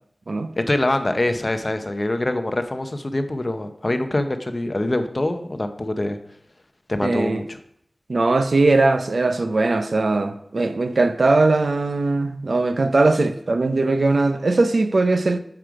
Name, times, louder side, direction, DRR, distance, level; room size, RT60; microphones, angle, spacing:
voice 1, 0.6-6.2 6.9-7.6, left 1 dB, 35° left, 0.7 m, -24 dB
voice 2, 7.0-7.4 8.1-15.4, right 3 dB, 65° right, 0.5 m, -20 dB
7.5 x 4.9 x 4.8 m
wide cardioid pair, 85°, 0 cm